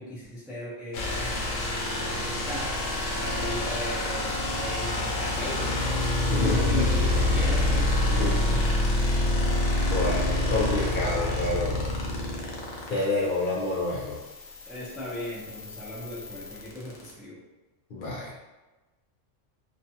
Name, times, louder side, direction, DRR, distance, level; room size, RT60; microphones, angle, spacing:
voice 1, 0.0-1.4 2.0-2.7 3.2-7.9 14.7-17.4, left 1 dB, ahead, -7 dB, 0.4 m, -37 dB
sound 1, 0.9-17.1, left 2 dB, 90° left, 1.0 m, -27 dB
voice 2, 6.3-6.8 8.1-8.6 9.0-9.2 9.9-11.8 12.9-14.2 17.9-18.3, left 2 dB, 65° left, -4 dB, 0.5 m, -28 dB
2.5 x 2.2 x 2.7 m, 1.1 s
omnidirectional pair, 1.3 m